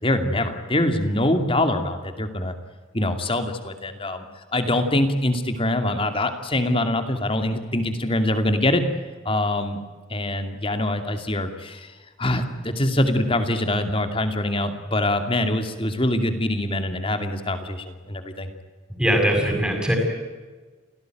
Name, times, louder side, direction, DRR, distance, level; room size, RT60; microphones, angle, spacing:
voice 1, 0.0-2.5 2.9-4.2 4.5-8.8 9.2-9.8 10.1-11.9 12.2-18.5, left 1 dB, 25° left, 7 dB, 2.6 m, -24 dB
voice 2, 19.0-20.0, equal, 5° right, 0 dB, 5.7 m, -20 dB
29.5 x 17.5 x 9.3 m, 1.4 s
head